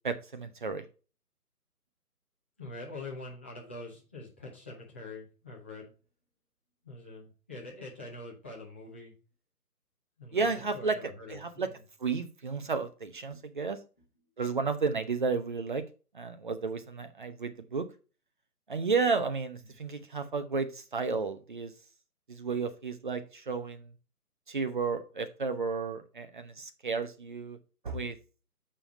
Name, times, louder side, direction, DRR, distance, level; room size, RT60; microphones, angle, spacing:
voice 1, 0.0-0.8 10.3-11.0 11.3-11.7 12.0-13.8 14.4-15.8 16.1-17.9 18.7-21.7 22.3-23.9 24.5-27.6 27.8-28.2, right 4 dB, 30° right, 8 dB, 0.9 m, -32 dB
voice 2, 2.6-5.9 6.8-9.1 10.2-11.8 13.3-13.4 19.6-19.8, left 2 dB, 10° left, -5 dB, 0.8 m, -45 dB
6.9 x 5.6 x 4.1 m, 0.34 s
figure-of-eight pair, 145°, 47 cm